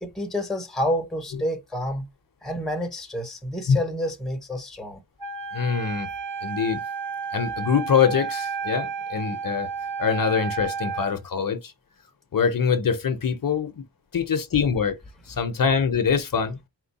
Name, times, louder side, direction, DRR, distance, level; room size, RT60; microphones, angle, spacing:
voice 1, 0.0-2.0 2.4-5.0, equal, ahead, 0.6 m, -29 dB
Wind instrument woodwind instrument, 5.2-11.2, right 6 dB, 45° right, 1.2 m, -32 dB
voice 2, 5.5-6.1 6.4-6.8 7.3-9.7 10.0-11.7 12.3-13.8 14.1-15.0 15.3-16.6, left 6 dB, 50° left, 0.7 m, -24 dB
4.4 x 2.2 x 4.0 m
wide cardioid pair, 165°, 45 cm